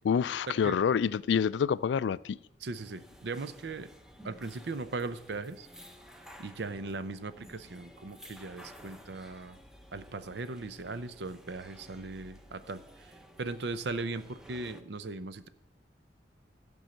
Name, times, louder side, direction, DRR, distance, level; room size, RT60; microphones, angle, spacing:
voice 1, 0.0-2.4, left 7 dB, 85° left, 0.3 m, -27 dB
voice 2, 2.6-3.9 4.2-5.7 6.4-9.6 9.9-15.5, right 3 dB, 75° right, 0.7 m, -38 dB
sound 1, 2.7-14.8, equal, 5° right, 0.8 m, -53 dB
13.5 x 5.4 x 7.7 m
head